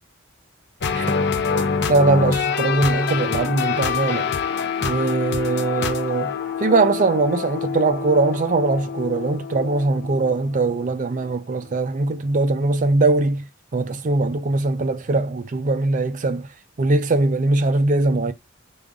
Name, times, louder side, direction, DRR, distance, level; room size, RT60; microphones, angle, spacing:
sound 1, 0.8-11.3, left 6 dB, 60° left, 0.7 m, -26 dB
voice 1, 1.9-4.3 4.8-6.3 6.6-13.5 13.7-16.5 16.8-18.3, right 3 dB, 40° right, 0.4 m, -21 dB
5.0 x 2.5 x 3.6 m
head